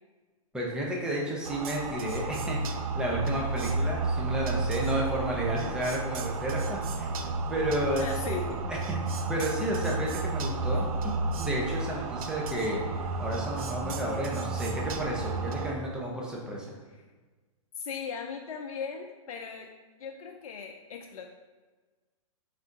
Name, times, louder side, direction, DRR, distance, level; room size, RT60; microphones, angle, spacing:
voice 1, 0.5-7.1 7.5-8.8 9.1-11.1 11.4-12.8 13.2-16.7, right 1 dB, 5° right, -3 dB, 0.6 m, -32 dB
sound 1, 1.4-15.7, right 3 dB, 80° right, 0.5 m, -32 dB
voice 2, 8.0-8.6 10.7-10.8 17.8-19.7 20.0-21.3, left 6 dB, 85° left, 3 dB, 0.4 m, -38 dB
4.1 x 3.5 x 2.5 m, 1.3 s
hypercardioid pair, 135°, 18 cm